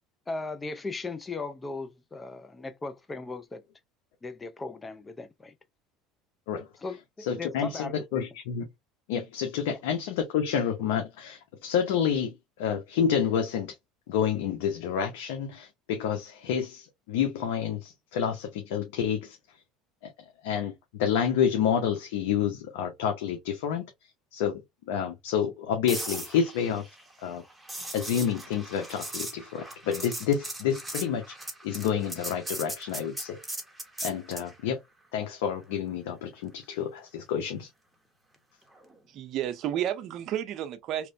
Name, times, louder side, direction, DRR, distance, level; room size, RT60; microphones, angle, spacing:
voice 1, 0.3-3.6 4.2-5.5 6.8-8.2 9.7-9.8, left 3 dB, 15° left, 0.4 m, -37 dB
voice 2, 7.2-8.7 9.1-13.7 14.1-19.4 20.0-20.1 20.4-23.8 24.3-26.8 27.2-27.4 27.9-31.3 31.6-33.4 34.0-34.8 35.1-37.7, left 8 dB, 85° left, 0.6 m, -29 dB
sound 1, 25.9-34.5 38.7-38.9, right 1 dB, 5° right, 0.8 m, -39 dB
voice 3, 39.1-41.1, right 11 dB, 50° right, 0.6 m, -31 dB
3.0 x 2.1 x 2.5 m
supercardioid pair, 120°, 0 cm